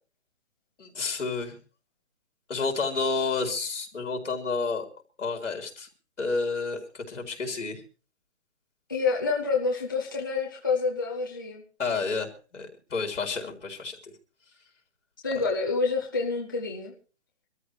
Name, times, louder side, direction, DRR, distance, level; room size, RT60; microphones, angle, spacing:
voice 1, 0.8-1.6 2.5-4.9 5.2-5.9 6.2-7.8 11.8-14.1 15.3-15.4, left 4 dB, 65° left, 4 dB, 4.2 m, -30 dB
voice 2, 8.9-11.6 15.2-16.9, left 4 dB, 15° left, -2 dB, 0.7 m, -27 dB
24.5 x 13.5 x 3.2 m, 0.35 s
hypercardioid pair, 180°, 38 cm